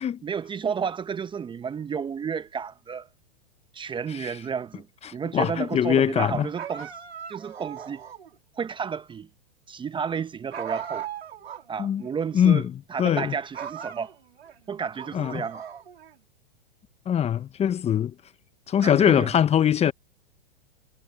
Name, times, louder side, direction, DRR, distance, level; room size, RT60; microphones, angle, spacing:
voice 1, 0.2-3.1 3.7-4.9 5.1-6.9 7.3-8.0 8.6-9.3 9.7-11.1 11.7-12.6 12.9-14.1 14.7-15.6 18.8-19.3, right 6 dB, 15° right, 1.0 m, -31 dB
voice 2, 5.0-6.5 11.8-12.0 12.3-13.3 15.1-15.4 17.1-18.1 18.7-19.9, left 9 dB, 20° left, 1.1 m, -22 dB
sound 1, 6.6-8.3 10.5-11.7 12.0-12.1 13.0-13.2 13.5-14.6 15.0-16.2, right 8 dB, 85° right, 3.7 m, -38 dB
hypercardioid pair, 115°, 31 cm